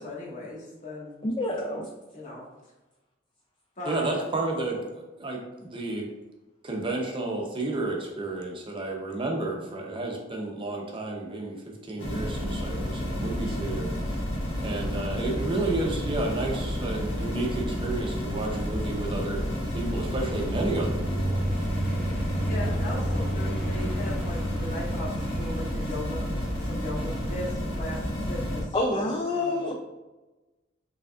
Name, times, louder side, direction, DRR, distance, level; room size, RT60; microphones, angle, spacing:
voice 1, 0.0-1.2 2.1-2.4 3.8-4.3 22.1-26.2 26.6-29.7, left 1 dB, 40° left, -4 dB, 1.1 m, -37 dB
voice 2, 1.2-1.9 28.7-29.7, left 1 dB, 25° left, 1 dB, 0.3 m, -27 dB
voice 3, 3.9-4.8 5.2-6.1 6.6-13.9 14.6-21.4, right 2 dB, 30° right, 0 dB, 0.6 m, -31 dB
sound 1, 12.0-28.6, equal, 75° left, 1.3 m, -31 dB
sound 2, 20.0-25.5, right 1 dB, 5° left, 0.8 m, -31 dB
5.1 x 3.3 x 2.4 m, 1.1 s
head